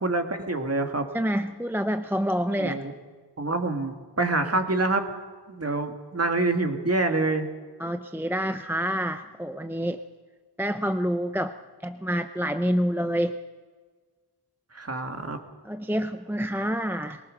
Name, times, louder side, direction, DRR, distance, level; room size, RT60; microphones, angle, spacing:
voice 1, 0.0-1.1 2.6-2.9 3.4-5.1 5.5-7.5 14.7-15.4, right 2 dB, 35° right, 6 dB, 2.0 m, -26 dB
voice 2, 1.1-2.8 7.8-10.0 10.6-11.6 11.8-13.4 15.6-17.2, equal, 5° right, 9 dB, 0.6 m, -27 dB
21.5 x 19.0 x 6.5 m, 1.5 s
wide cardioid pair, 85°, 43 cm